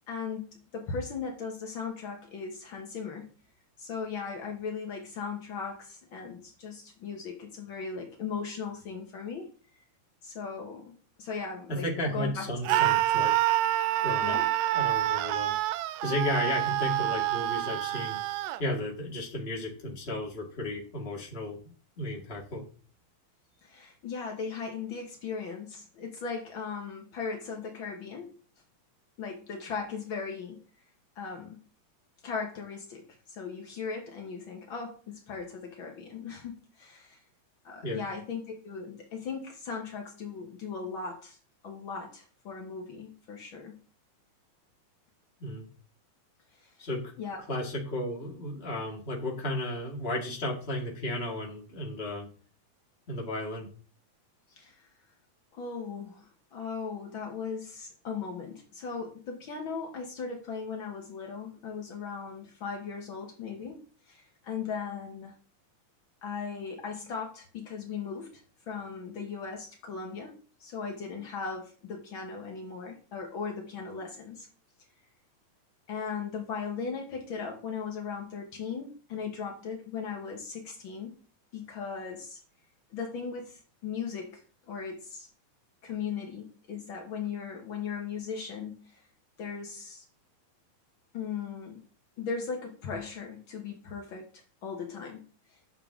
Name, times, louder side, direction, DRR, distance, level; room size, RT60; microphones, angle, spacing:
voice 1, 0.1-3.3 3.8-9.5 10.2-10.9 11.2-12.8 14.2-14.5 23.6-28.3 29.2-30.6 31.1-31.6 32.2-37.2 37.6-41.4 41.6-43.7 46.5-46.9 47.2-47.4 54.6-54.8 55.5-65.3 66.2-74.5 75.9-81.1 81.5-82.4 82.9-85.3 85.8-89.0 89.4-90.0 91.1-91.8 92.2-95.2 95.5-95.6, left 5 dB, 90° left, 1 dB, 1.0 m, -38 dB
voice 2, 11.7-13.6 14.0-14.4 14.7-15.5 16.0-18.2 18.6-21.6 22.0-22.6 37.8-38.0 45.4-45.7 46.8-47.1 47.5-52.3 53.1-53.7, left 1 dB, 25° left, -2 dB, 1.5 m, -34 dB
Screaming, 12.7-18.6, right 15 dB, 85° right, 2.4 m, -27 dB
9.6 x 7.1 x 3.7 m, 0.40 s
omnidirectional pair, 4.3 m